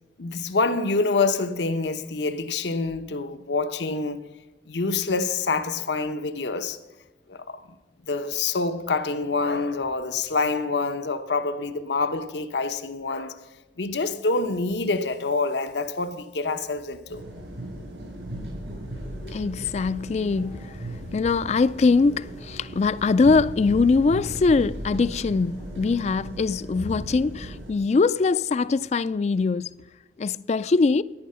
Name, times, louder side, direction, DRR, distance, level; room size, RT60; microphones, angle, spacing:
voice 1, 0.2-4.2 4.7-6.8 7.3-7.8 8.0-13.4 13.8-17.2, left 3 dB, 85° left, 0.9 m, -26 dB
sound 1, 17.1-27.7, right 1 dB, 80° right, 6.1 m, -37 dB
voice 2, 19.2-29.8 30.2-31.0, left 4 dB, 40° left, 0.3 m, -22 dB
14.5 x 10.5 x 5.6 m
head